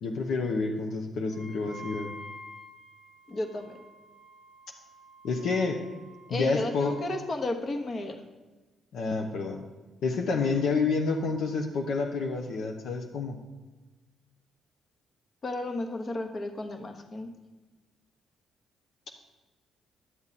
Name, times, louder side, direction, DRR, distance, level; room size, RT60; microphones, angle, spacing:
voice 1, 0.0-2.1 5.2-5.8 6.3-7.0 8.9-9.7 10.0-13.4, left 4 dB, 70° left, 2 dB, 0.9 m, -29 dB
Wind instrument woodwind instrument, 1.3-7.2, equal, 20° right, 0.9 m, -48 dB
voice 2, 3.3-3.8 6.3-8.2 10.4-10.6 15.4-17.3, left 2 dB, 40° left, 5 dB, 1.1 m, -33 dB
11.0 x 7.2 x 4.1 m, 1.2 s
cardioid pair, 90°, 0 cm